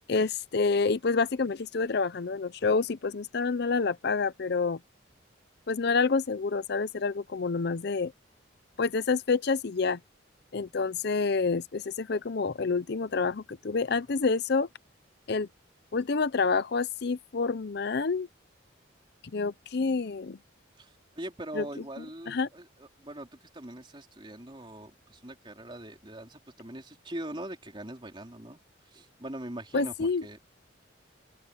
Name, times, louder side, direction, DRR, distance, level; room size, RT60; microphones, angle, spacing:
voice 1, 0.1-4.8 5.7-8.1 8.8-10.0 10.5-14.7 15.3-15.5 15.9-18.3 19.3-20.4 21.5-21.6 22.0-22.5 29.7-30.2, left 4 dB, 55° left, 0.5 m, -28 dB
voice 2, 20.8-23.3 23.5-28.6 28.9-30.4, right 1 dB, 25° right, 3.8 m, -42 dB
open air
head